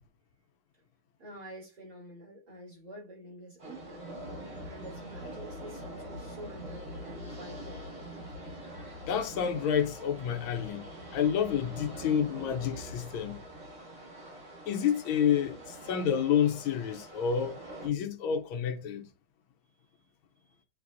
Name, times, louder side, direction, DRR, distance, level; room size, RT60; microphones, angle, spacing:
voice 1, 1.2-8.0 19.6-20.6, right 1 dB, 50° right, 3.5 m, -49 dB
sound 1, 3.6-17.9, equal, 75° right, 4.6 m, -44 dB
voice 2, 9.1-13.4 14.7-19.1, left 8 dB, 80° left, 1.6 m, -29 dB
9.4 x 4.1 x 2.5 m
omnidirectional pair, 2.2 m